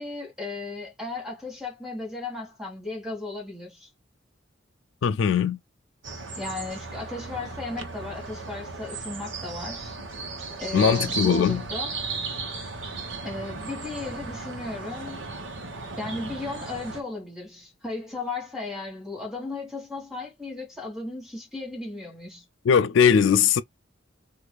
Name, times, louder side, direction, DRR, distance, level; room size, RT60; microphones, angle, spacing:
voice 1, 0.0-3.9 6.4-10.0 10.6-12.0 13.2-15.3 16.0-22.4, left 3 dB, 5° right, 1.6 m, -35 dB
voice 2, 5.0-5.6 10.7-11.6 22.7-23.6, left 7 dB, 85° left, 0.4 m, -20 dB
sound 1, 6.0-17.0, right 4 dB, 80° right, 1.2 m, -35 dB
4.6 x 2.6 x 2.2 m
head